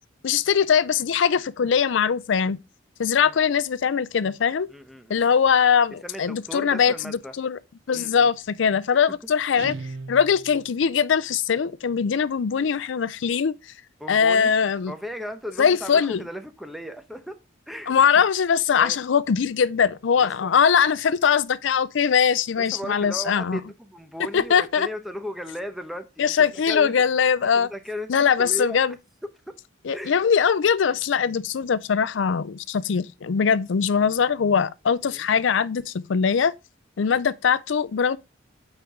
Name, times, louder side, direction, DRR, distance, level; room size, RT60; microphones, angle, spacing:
voice 1, 0.2-2.6 3.0-4.7 5.1-7.6 7.9-9.7 10.1-13.5 14.1-14.9 15.6-16.2 17.9-23.6 24.3-24.9 26.2-27.7 28.1-28.9 29.8-36.5 37.0-38.2, left 7 dB, 70° left, 0.4 m, -21 dB
voice 2, 4.7-5.2 6.0-7.3 7.9-8.3 14.0-14.5 14.9-17.3 17.7-18.2 18.8-19.0 20.2-20.5 22.6-27.0 27.4-28.8 29.9-30.1 35.1-35.3, equal, ahead, 0.8 m, -36 dB
Guitar, 9.6-10.8, right 3 dB, 75° right, 0.9 m, -37 dB
8.8 x 4.5 x 3.7 m
head